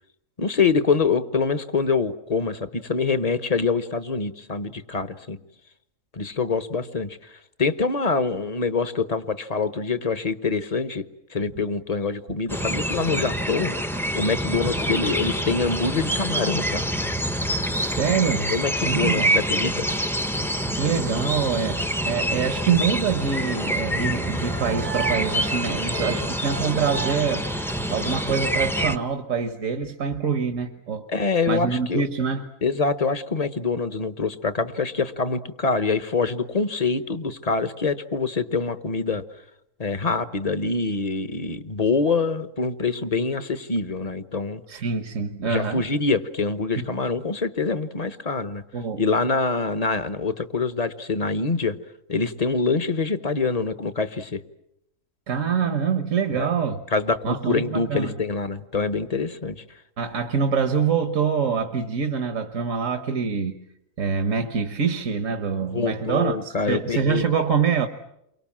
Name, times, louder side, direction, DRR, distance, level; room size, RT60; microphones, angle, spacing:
voice 1, 0.4-5.4 6.1-7.3 7.6-11.0 11.3-13.8 14.1-16.8 18.5-19.9 25.9-26.3 31.1-32.0 32.6-39.2 39.8-44.6 45.4-48.6 49.0-51.8 52.1-54.4 56.3-56.5 56.9-59.6 65.7-67.2, left 4 dB, 30° left, 12 dB, 1.1 m, -25 dB
sound 1, 12.5-29.0, equal, ahead, 0.8 m, -26 dB
voice 2, 17.7-18.5 18.8-19.3 20.4-27.5 27.9-31.1 31.5-32.5 44.7-45.8 46.7-46.9 48.7-49.0 55.3-56.8 57.2-58.1 60.0-63.6 64.0-67.9, right 6 dB, 70° right, 7 dB, 1.6 m, -25 dB
sound 2, 24.1-28.3, right 6 dB, 85° right, 2.0 m, -36 dB
29.5 x 23.5 x 7.4 m, 0.82 s
omnidirectional pair, 1.4 m